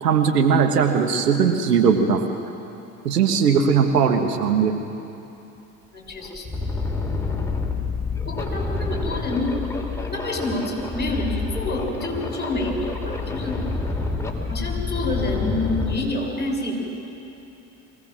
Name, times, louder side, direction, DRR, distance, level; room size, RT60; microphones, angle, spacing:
voice 1, 0.0-2.2 3.0-4.8, right 6 dB, 85° right, 5 dB, 1.4 m, -19 dB
sound 1, 5.6-5.7 6.1-16.0, left 3 dB, 5° left, 2.8 m, -28 dB
voice 2, 5.9-6.6 8.2-9.8 10.1-13.6 14.5-16.7, left 2 dB, 20° left, 0 dB, 5.7 m, -28 dB
23.0 x 17.0 x 7.6 m, 2.9 s
hypercardioid pair, 65°, 46 cm